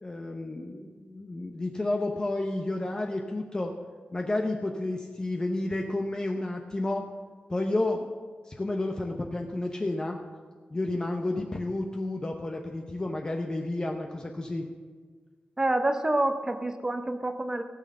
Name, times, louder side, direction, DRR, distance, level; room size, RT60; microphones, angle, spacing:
voice 1, 0.0-3.7 4.1-7.1 7.5-10.2 10.7-14.7, left 2 dB, 25° left, 2 dB, 0.8 m, -31 dB
voice 2, 15.6-17.6, right 2 dB, 20° right, 7 dB, 0.7 m, -27 dB
16.5 x 6.3 x 6.7 m, 1.5 s
wide cardioid pair, 150°, 3 cm